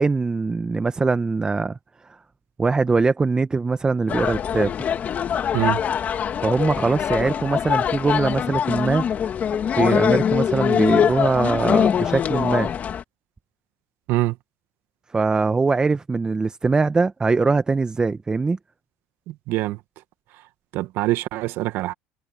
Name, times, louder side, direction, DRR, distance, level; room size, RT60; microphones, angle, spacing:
voice 1, 0.0-1.8 2.6-4.7 6.4-9.0 9.7-12.7 15.1-18.6, right 4 dB, 20° right, 1.0 m, -22 dB
sound 1, 4.1-13.0, left 8 dB, 40° left, 2.8 m, -23 dB
voice 2, 19.5-19.8 20.7-21.9, right 17 dB, 65° right, 1.6 m, -24 dB
supercardioid pair, 90°, 4 cm